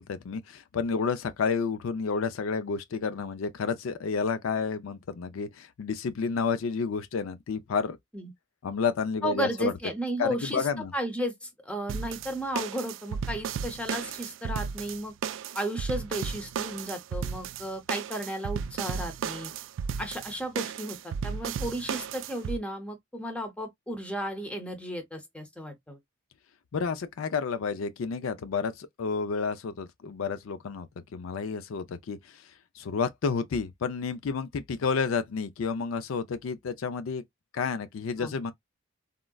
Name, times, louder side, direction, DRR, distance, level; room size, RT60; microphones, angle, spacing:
voice 1, 0.0-8.0 8.6-9.7 10.2-10.9 26.7-30.9 31.1-32.2 32.8-37.2 37.5-38.5, left 5 dB, 90° left, 0.4 m, -30 dB
voice 2, 9.2-15.1 15.5-19.5 20.0-26.0 38.2-38.3, equal, 5° left, 0.7 m, -34 dB
sound 1, 11.9-22.6, right 7 dB, 75° right, 0.3 m, -34 dB
3.6 x 2.1 x 2.2 m
head